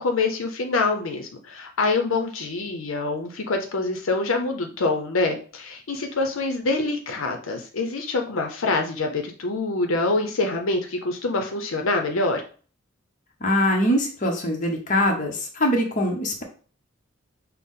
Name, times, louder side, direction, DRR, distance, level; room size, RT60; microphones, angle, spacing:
voice 1, 0.0-12.4, left 3 dB, 75° left, 4 dB, 0.7 m, -25 dB
voice 2, 13.4-16.4, equal, 40° left, 1 dB, 0.9 m, -23 dB
5.9 x 2.0 x 3.7 m, 0.39 s
head